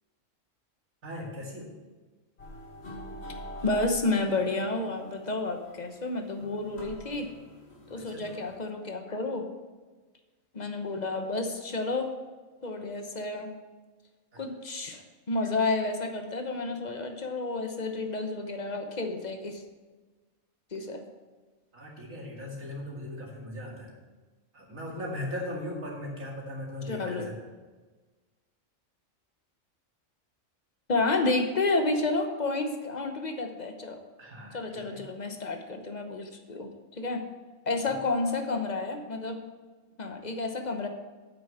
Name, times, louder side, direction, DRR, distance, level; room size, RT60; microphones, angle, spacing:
voice 1, 1.0-1.7 7.9-8.2 21.7-23.9 24.5-27.3 34.2-35.0 37.7-37.8, left 1 dB, 90° right, -3 dB, 2.7 m, -38 dB
sound 1, 2.4-8.6, left 1 dB, 55° left, 2.3 m, -45 dB
voice 2, 3.6-7.3 7.9-9.5 10.5-12.1 12.6-13.5 14.4-15.0 15.3-19.6 20.7-21.0 26.8-27.3 30.9-34.0 34.5-37.2 37.7-39.4 40.0-40.9, left 3 dB, 35° left, 5 dB, 1.0 m, -30 dB
8.5 x 6.3 x 6.9 m, 1.3 s
omnidirectional pair, 1.4 m